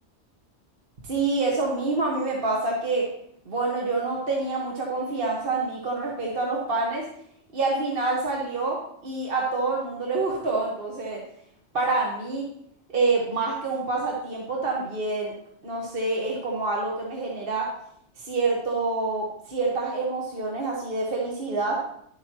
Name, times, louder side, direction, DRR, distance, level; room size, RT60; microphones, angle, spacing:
voice 1, 1.0-3.1 3.4-7.0 7.5-11.2 11.7-12.5 12.9-15.3 15.6-17.7 18.2-21.8, right 3 dB, 50° right, -2 dB, 1.5 m, -27 dB
11.0 x 8.3 x 2.9 m, 0.70 s
omnidirectional pair, 1.2 m